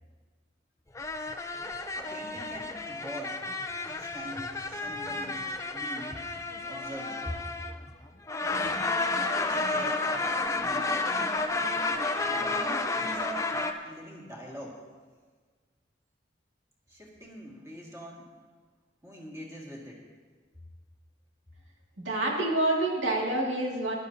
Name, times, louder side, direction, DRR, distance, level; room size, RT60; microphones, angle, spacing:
sound 1, 1.0-7.9 8.3-13.7, left 3 dB, 15° left, 0.6 m, -31 dB
voice 1, 2.0-3.4 3.8-5.4 5.7-6.1 6.7-7.4 8.6-9.1 9.4-11.0 12.3-13.6 13.8-14.8 16.9-18.3 19.0-20.0, equal, 15° right, -3 dB, 2.0 m, -43 dB
voice 2, 22.0-23.9, right 2 dB, 85° right, -2 dB, 2.3 m, -27 dB
19.0 x 11.5 x 2.8 m, 1.5 s
head